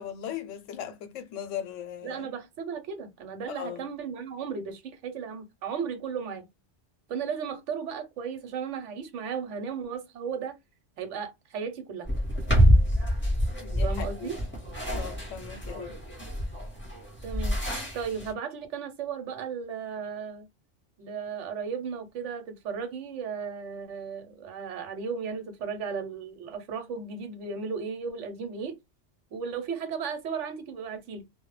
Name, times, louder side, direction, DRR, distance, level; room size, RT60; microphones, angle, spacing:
voice 1, 0.0-2.3 3.5-3.9 13.6-14.3 14.8-16.0, left 9 dB, 85° left, 0.9 m, -38 dB
voice 2, 2.0-6.5 7.1-10.6 11.0-12.1 13.8-14.4 17.2-17.6 17.9-20.5 21.0-28.8 29.3-31.3, right 6 dB, 75° right, 1.0 m, -35 dB
sound 1, 12.1-18.3, equal, 10° left, 0.8 m, -26 dB
2.2 x 2.1 x 3.0 m
omnidirectional pair, 1.2 m